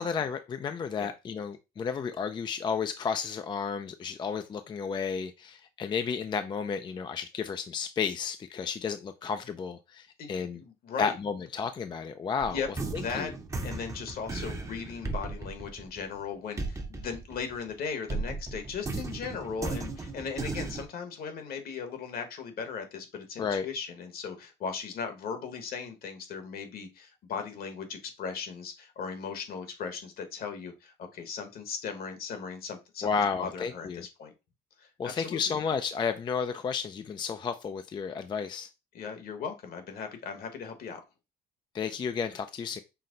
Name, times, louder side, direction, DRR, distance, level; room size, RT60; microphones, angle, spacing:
voice 1, 0.0-10.6 11.0-12.6 12.9-13.3 23.4-23.7 33.0-34.0 35.0-38.7 41.7-42.8, left 6 dB, 25° left, 9 dB, 0.3 m, -32 dB
voice 2, 10.2-11.1 12.4-12.7 12.9-13.3 13.6-34.3 34.8-35.5 38.9-41.0, left 6 dB, 60° left, 7 dB, 1.3 m, -38 dB
sound 1, 12.4-17.7 18.1-20.8, right 3 dB, 20° right, 0.7 m, -36 dB
5.8 x 2.1 x 3.8 m, 0.26 s
cardioid pair, 110°, 17 cm